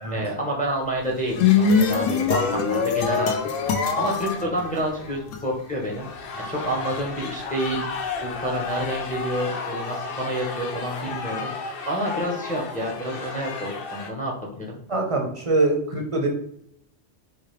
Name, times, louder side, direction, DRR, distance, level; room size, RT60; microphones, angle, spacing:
voice 1, 0.1-3.3 3.9-6.1 6.5-7.8 8.2-11.5 11.9-14.8, right 1 dB, 10° left, -1 dB, 0.5 m, -28 dB
sound 1, 1.1-5.4, left 6 dB, 80° left, 1.0 m, -22 dB
sound 2, 3.0-3.5 4.6-5.1 5.7-14.1, left 4 dB, 60° left, 0.7 m, -33 dB
voice 2, 14.9-16.3, right 2 dB, 35° right, 1 dB, 0.6 m, -23 dB
4.5 x 2.3 x 3.1 m, 0.69 s
omnidirectional pair, 1.3 m